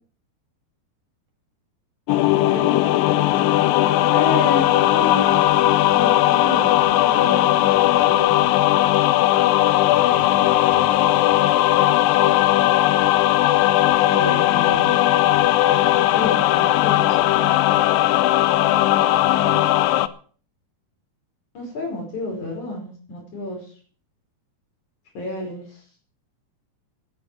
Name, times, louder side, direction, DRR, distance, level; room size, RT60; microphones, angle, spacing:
sound 1, 2.1-20.1, left 14 dB, 85° left, 2.0 m, -18 dB
voice 1, 2.2-2.9 9.9-11.5 19.2-19.7, right 3 dB, 50° right, 2 dB, 3.6 m, -38 dB
voice 2, 4.1-5.4 5.9-8.4 14.1-15.0 15.9-17.1 21.5-23.7 25.1-25.8, left 2 dB, 45° left, 0 dB, 6.4 m, -31 dB
11.5 x 10.5 x 7.7 m, 0.43 s
omnidirectional pair, 4.9 m